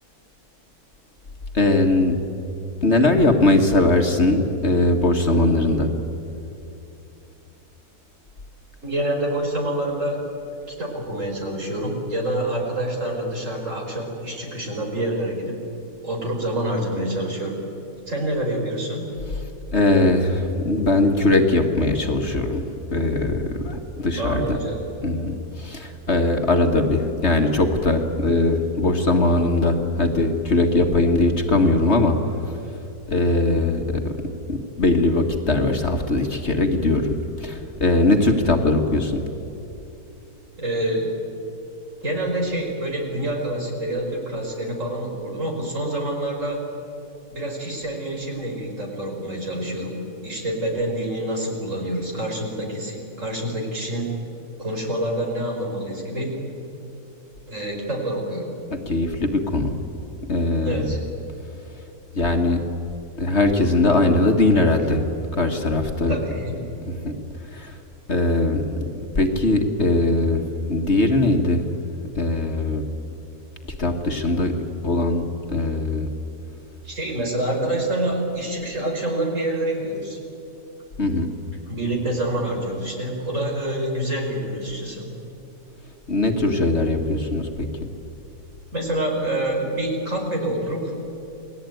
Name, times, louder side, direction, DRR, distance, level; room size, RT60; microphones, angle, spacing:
voice 1, 1.5-2.1 2.8-5.9 19.7-24.6 25.0-32.2 33.1-39.2 58.7-59.8 60.3-60.9 62.1-62.6 63.2-65.0 65.3-66.2 66.9-67.2 67.5-67.8 68.1-70.4 70.7-71.6 72.1-72.8 73.8-74.5 74.8-76.1 81.0-81.3 86.1-87.7, left 2 dB, 45° left, 3 dB, 1.8 m, -20 dB
voice 2, 8.8-10.2 10.7-15.6 16.0-17.6 18.1-19.1 24.1-24.8 40.6-41.1 42.0-46.6 47.3-50.0 50.2-54.1 54.6-56.4 57.5-58.5 60.6-61.0 66.1-66.7 76.8-80.2 81.7-85.1 88.7-90.9, right 1 dB, 55° right, 0 dB, 5.2 m, -27 dB
29.0 x 19.5 x 9.2 m, 2.8 s
omnidirectional pair, 1.6 m